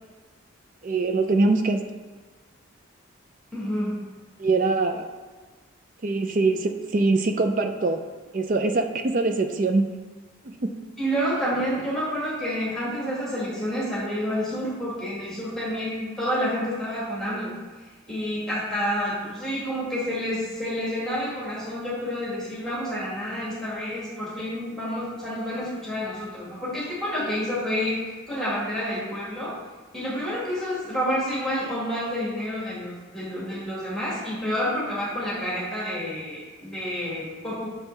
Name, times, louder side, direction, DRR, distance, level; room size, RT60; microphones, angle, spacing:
voice 1, 0.8-1.8 4.4-5.1 6.0-8.0 8.3-9.9 10.4-10.7, right 3 dB, 40° right, 6 dB, 0.4 m, -23 dB
voice 2, 3.5-4.0 11.0-17.5 18.1-29.6 29.9-37.7, equal, ahead, -8 dB, 1.7 m, -29 dB
6.4 x 6.2 x 3.2 m, 1.3 s
head